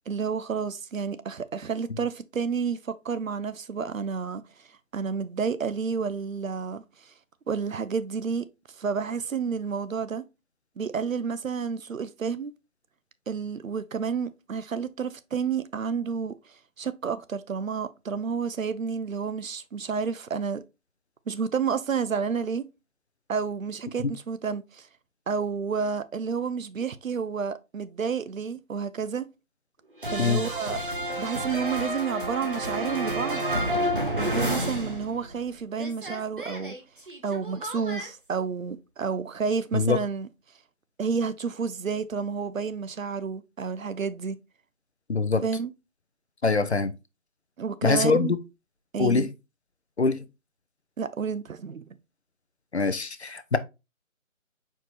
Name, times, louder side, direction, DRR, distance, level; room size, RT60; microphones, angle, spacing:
voice 1, 0.1-4.4 4.9-7.1 7.5-8.5 8.7-10.2 10.8-12.5 13.3-16.3 16.8-20.6 21.3-22.7 23.3-24.9 25.3-29.3 30.1-30.8 31.2-33.5 34.1-36.8 37.2-40.3 41.0-44.4 45.4-45.7 47.6-48.3 48.9-49.3 51.0-51.8, right 6 dB, 75° right, 0.6 m, -30 dB
sound 1, 30.0-35.5 35.7-38.1, right 1 dB, 40° right, 0.8 m, -30 dB
voice 2, 45.1-45.4 46.4-46.9 47.8-48.4 49.0-49.3 50.0-50.2 52.7-53.6, left 4 dB, 55° left, 0.5 m, -23 dB
4.6 x 4.5 x 2.5 m
figure-of-eight pair, 175°, 41 cm